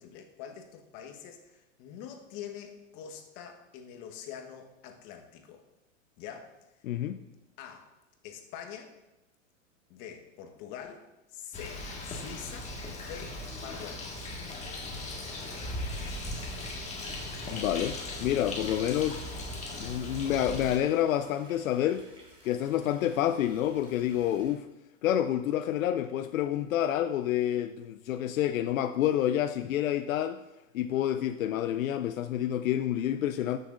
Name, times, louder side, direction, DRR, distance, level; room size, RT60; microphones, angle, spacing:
voice 1, 0.0-5.6 6.2-6.5 7.6-7.9 8.2-8.9 9.9-14.3, left 8 dB, 45° left, 3 dB, 1.3 m, -45 dB
voice 2, 6.8-7.2 17.5-19.3 19.7-22.0 22.4-24.7 25.0-30.4 30.7-33.6, left 11 dB, 85° left, 10 dB, 0.5 m, -28 dB
Bird, 11.5-20.8, left 1 dB, 15° left, 1.6 m, -38 dB
sound 1, 15.2-24.5, right 1 dB, 15° right, 2.3 m, -56 dB
13.0 x 6.5 x 2.5 m, 0.98 s
hypercardioid pair, 115°, 40 cm